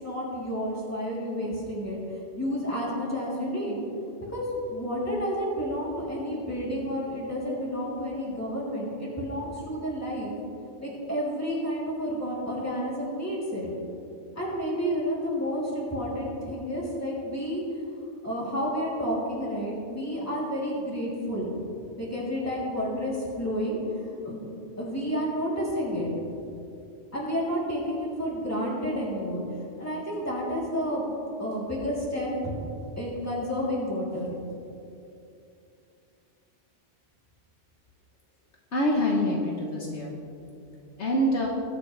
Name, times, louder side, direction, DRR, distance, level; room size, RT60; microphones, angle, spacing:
voice 1, 0.0-3.8 4.2-4.4 4.7-10.3 10.8-13.7 14.3-17.6 18.2-21.5 22.0-23.8 24.2-24.5 24.8-26.1 27.1-29.4 29.8-31.1 31.4-32.5 33.0-34.3, equal, 10° left, -6 dB, 3.3 m, -30 dB
voice 2, 38.7-40.1 41.0-41.5, equal, 70° left, -1 dB, 1.6 m, -25 dB
21.0 x 8.9 x 3.4 m, 2.7 s
omnidirectional pair, 1.2 m